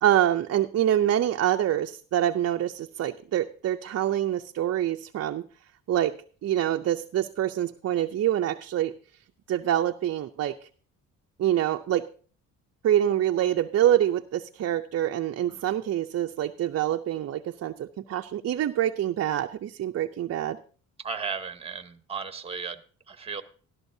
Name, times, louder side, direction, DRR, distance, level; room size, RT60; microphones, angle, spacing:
voice 1, 0.0-5.4 5.9-6.2 6.4-8.9 9.5-10.6 11.4-12.1 12.8-20.6, right 11 dB, 45° right, 5 dB, 0.5 m, -25 dB
voice 2, 21.0-23.4, right 5 dB, 15° right, 9 dB, 1.0 m, -35 dB
13.0 x 12.5 x 2.7 m, 0.41 s
cardioid pair, 95°, 36 cm